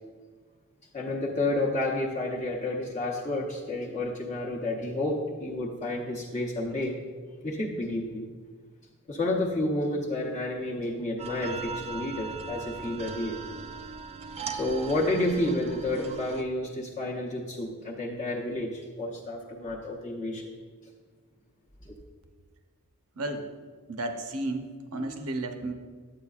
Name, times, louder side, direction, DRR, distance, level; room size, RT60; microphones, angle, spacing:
voice 1, 0.9-6.9 7.4-8.3 9.1-13.4 14.5-20.5 21.8-21.9, left 1 dB, 35° left, -4 dB, 0.8 m, -30 dB
sound 1, 11.2-16.4, right 4 dB, 30° right, 0.3 m, -39 dB
voice 2, 23.2-23.5 23.9-25.7, right 2 dB, 70° right, 6 dB, 0.7 m, -33 dB
8.8 x 8.5 x 2.4 m, 1.5 s
head